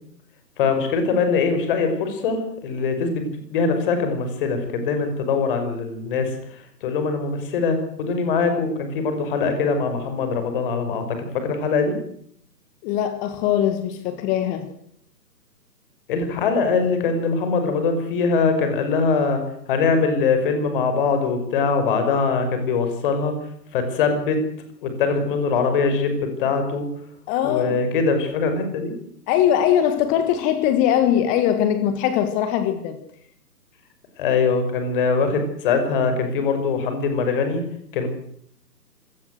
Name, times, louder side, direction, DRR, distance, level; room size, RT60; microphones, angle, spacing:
voice 1, 0.6-12.0 16.1-19.4 19.7-23.4 23.7-24.5 24.8-26.9 27.4-28.9 34.2-37.6 37.9-38.1, left 4 dB, 30° left, 7 dB, 5.8 m, -22 dB
voice 2, 12.8-14.7 27.3-27.8 29.3-33.0, left 10 dB, 15° left, 10 dB, 1.5 m, -21 dB
26.0 x 18.5 x 8.0 m, 0.68 s
figure-of-eight pair, 135°, 50 cm